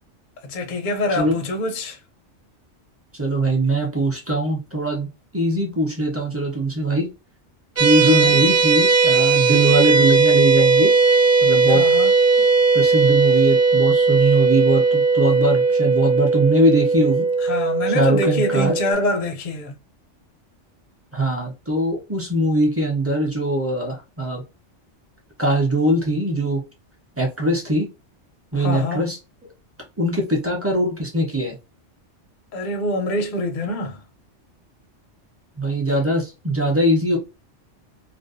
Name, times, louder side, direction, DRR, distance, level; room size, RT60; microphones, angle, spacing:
voice 1, 0.4-2.0 8.0-8.4 11.7-12.1 17.4-19.7 28.5-29.0 32.5-34.0, left 1 dB, 60° left, 0.5 m, -25 dB
voice 2, 3.1-5.1 5.3-7.1 7.8-10.9 11.4-11.8 12.4-12.5 12.7-17.3 17.9-18.7 21.1-24.4 25.4-26.6 27.2-27.9 28.5-29.2 30.0-31.5 35.6-37.2, right 1 dB, 20° right, 0.4 m, -21 dB
sound 1, 7.8-18.9, right 4 dB, 60° right, 0.7 m, -17 dB
2.5 x 2.1 x 2.4 m
omnidirectional pair, 1.2 m